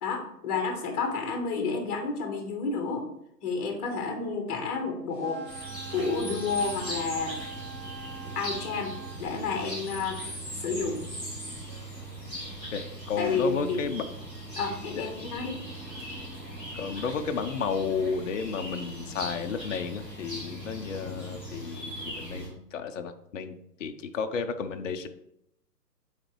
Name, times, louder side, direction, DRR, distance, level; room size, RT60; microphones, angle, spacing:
voice 1, 0.0-3.1 3.4-5.4 5.9-7.3 8.3-10.2 10.5-11.1 13.2-13.8 14.6-15.6, left 4 dB, 25° left, 3 dB, 1.2 m, -30 dB
sound 1, 5.1-9.2, right 5 dB, 80° right, 1.2 m, -44 dB
sound 2, 5.4-22.5, right 1 dB, 5° right, 0.5 m, -39 dB
voice 2, 12.7-14.0 15.0-15.1 16.7-25.1, left 6 dB, 50° left, 7 dB, 0.6 m, -32 dB
8.7 x 4.1 x 3.1 m, 0.77 s
figure-of-eight pair, 125°, 49 cm